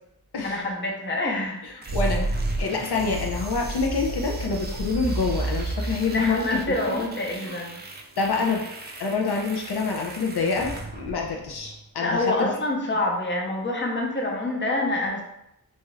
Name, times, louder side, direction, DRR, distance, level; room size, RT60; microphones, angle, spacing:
voice 1, 0.4-1.9 6.1-7.8 12.0-15.2, left 2 dB, 30° left, 0 dB, 0.6 m, -27 dB
voice 2, 1.6-6.6 6.9-7.1 7.4-7.5 8.2-8.6 9.0-12.5, left 4 dB, 90° left, 0 dB, 0.5 m, -27 dB
sound 1, 1.8-11.8, right 2 dB, 30° right, 0.4 m, -32 dB
2.8 x 2.3 x 3.1 m, 0.81 s
wide cardioid pair, 65°, 38 cm